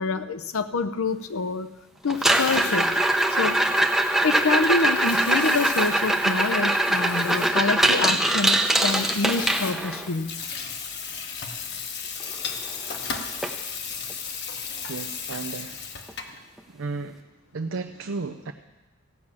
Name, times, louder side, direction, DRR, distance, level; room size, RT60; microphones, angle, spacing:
voice 1, 0.0-1.7 2.0-3.0 3.3-3.6 4.2-10.4, left 3 dB, 80° left, 11 dB, 0.7 m, -26 dB
Water tap faucet / Sink (filling or washing), 2.1-16.4, left 6 dB, 50° left, 1.1 m, -36 dB
sound 1, 2.1-10.1 12.3-12.4 12.7-13.0 13.4-13.5 14.1-14.2 16.1-16.2, right 1 dB, ahead, 0.6 m, -22 dB
voice 2, 14.9-15.8 16.7-17.3 17.5-18.5, right 3 dB, 70° right, 5 dB, 0.5 m, -33 dB
15.5 x 6.1 x 8.7 m, 1.1 s
head